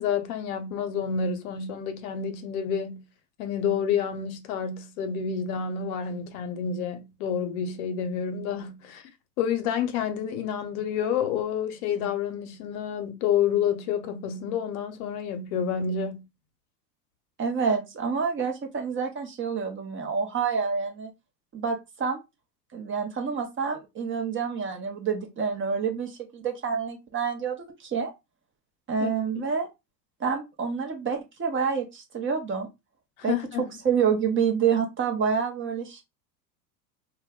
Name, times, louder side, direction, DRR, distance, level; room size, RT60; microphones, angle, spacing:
voice 1, 0.0-3.0 3.4-9.0 9.4-16.2 29.0-29.1 33.3-33.7, left 7 dB, 60° left, 0.7 m, -29 dB
voice 2, 17.4-21.1 21.5-22.2 22.7-28.1 28.9-29.7 30.2-32.7 33.2-33.3 33.8-36.0, right 6 dB, 25° right, 0.6 m, -28 dB
2.3 x 2.1 x 3.5 m
hypercardioid pair, 90°, 49 cm